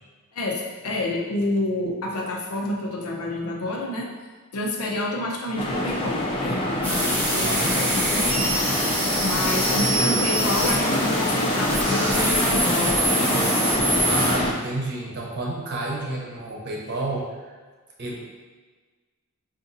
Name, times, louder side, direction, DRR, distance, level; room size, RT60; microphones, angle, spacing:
voice 1, 0.3-4.1 4.5-6.6 6.8-8.6 9.2-13.0, left 2 dB, 85° left, -1 dB, 0.6 m, -28 dB
sound 1, 5.6-14.5, left 1 dB, 25° left, 0.4 m, -25 dB
sound 2, 6.8-14.3, right 1 dB, 10° left, 0.8 m, -25 dB
voice 2, 7.3-7.7 9.8-10.3 14.1-17.5 18.0-18.2, right 2 dB, 50° right, -2 dB, 0.7 m, -30 dB
5.0 x 2.5 x 2.6 m, 1.4 s
head